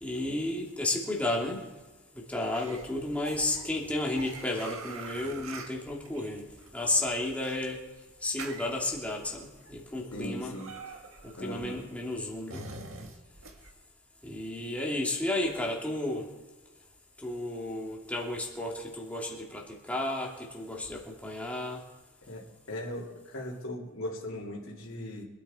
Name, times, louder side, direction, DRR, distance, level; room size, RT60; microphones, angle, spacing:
voice 1, 0.0-1.6 2.1-6.4 6.7-7.8 8.2-10.6 11.4-12.7 14.2-16.3 17.2-21.8, left 2 dB, 5° left, -2 dB, 2.7 m, -32 dB
sound 1, 2.5-13.7, right 4 dB, 80° right, 1.8 m, -46 dB
voice 2, 10.1-10.7 11.4-11.8 22.3-22.4 22.7-25.2, left 1 dB, 75° left, -7 dB, 3.1 m, -38 dB
25.5 x 10.0 x 4.4 m, 1.2 s
head